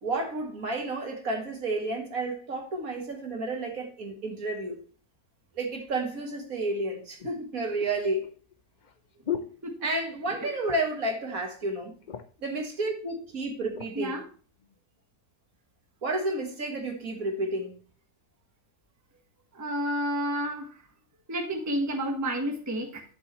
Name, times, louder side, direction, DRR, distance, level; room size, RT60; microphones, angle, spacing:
voice 1, 0.0-4.8 5.6-8.3 9.8-11.9 12.4-14.2 16.0-17.7, right 2 dB, 55° right, 2.2 m, -31 dB
sound 1, 6.2-6.3 7.2-10.3 10.6-11.1 11.4-11.5 11.8-12.5 13.2-14.0 14.6-14.8, left 9 dB, 50° left, 0.5 m, -39 dB
voice 2, 19.5-20.7 21.3-23.0, equal, 10° right, 1.2 m, -30 dB
11.0 x 6.8 x 3.1 m
omnidirectional pair, 1.7 m